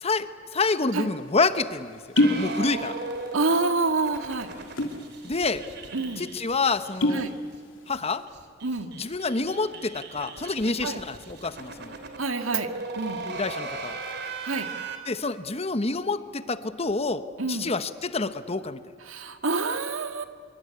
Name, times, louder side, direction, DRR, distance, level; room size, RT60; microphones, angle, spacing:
voice 1, 0.0-3.0 5.2-5.6 6.2-7.2 7.9-8.2 8.9-11.9 13.2-14.0 15.0-18.8, left 3 dB, 30° left, 12 dB, 1.1 m, -28 dB
sound 1, 1.1-1.2 2.0-2.5 2.8-3.4 3.7-3.9 4.6-5.1 5.5-5.6 5.9-6.1 6.7-7.3 7.7-8.1, left 1 dB, 70° left, 3.0 m, -24 dB
sound 2, 2.2-7.3 7.5-7.6 7.9-8.0 8.3-15.0, right 3 dB, 55° right, 3.0 m, -38 dB
voice 2, 3.3-4.5 5.9-6.2 7.1-7.3 8.6-8.9 10.8-11.0 12.2-12.7 13.0-13.2 14.4-14.7 17.4-17.7 19.1-20.2, right 3 dB, 90° right, 7 dB, 2.0 m, -27 dB
25.5 x 24.0 x 9.8 m, 2.1 s
head